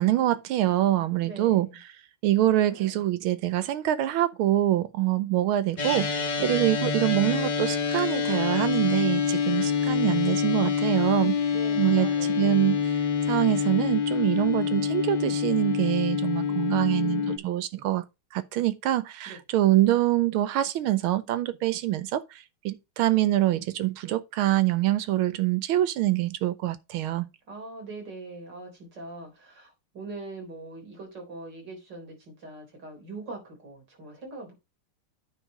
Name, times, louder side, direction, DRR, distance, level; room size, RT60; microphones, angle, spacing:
voice 1, 0.0-1.7 2.2-11.4 11.8-13.0 13.3-18.0 18.3-27.3, right 14 dB, 75° right, 1.5 m, -25 dB
voice 2, 1.2-1.8 2.7-3.0 5.7-6.0 6.4-6.6 11.5-12.7 16.5-17.6 19.3-19.4 27.5-34.5, right 3 dB, 50° right, 4.5 m, -42 dB
sound 1, 5.8-17.4, left 6 dB, 75° left, 0.4 m, -26 dB
9.1 x 4.6 x 5.1 m
omnidirectional pair, 2.4 m